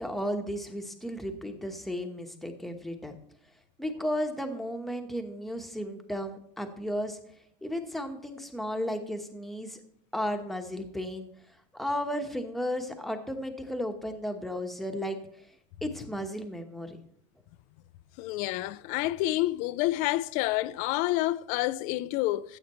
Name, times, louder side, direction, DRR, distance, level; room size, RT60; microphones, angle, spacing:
voice 1, 0.0-3.2 3.8-7.2 7.6-9.8 10.1-11.3 11.7-15.5 15.8-17.0, equal, ahead, 1.2 m, -34 dB
voice 2, 18.2-22.6, left 16 dB, 55° left, 0.5 m, -28 dB
14.5 x 8.1 x 3.1 m
cardioid pair, 155°, 16 cm